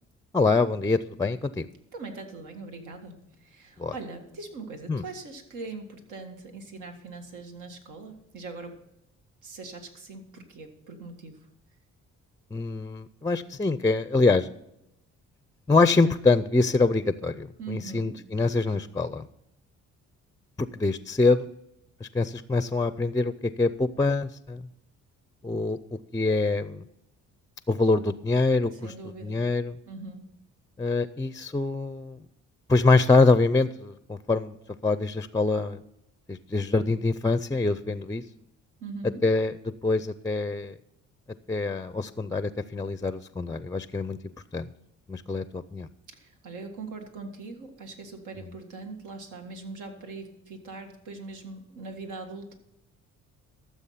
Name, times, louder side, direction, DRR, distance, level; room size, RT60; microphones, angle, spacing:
voice 1, 0.3-1.7 3.8-3.9 4.9-5.0 12.5-14.5 15.7-19.3 20.6-21.5 22.0-23.3 23.6-24.6 25.4-25.8 26.1-26.8 27.7-28.9 29.2-29.8 30.8-32.2 32.7-34.6 34.8-35.8 36.3-38.2 39.2-40.7 41.5-44.7 45.1-45.9 48.4-48.5, left 3 dB, 10° left, 13 dB, 0.4 m, -25 dB
voice 2, 1.9-8.8 9.4-11.5 17.6-18.2 28.7-29.4 29.9-30.3 38.8-39.2 46.1-52.5, right 3 dB, 85° right, 4 dB, 1.8 m, -41 dB
13.5 x 7.2 x 5.7 m, 0.83 s
cardioid pair, 90°, 30 cm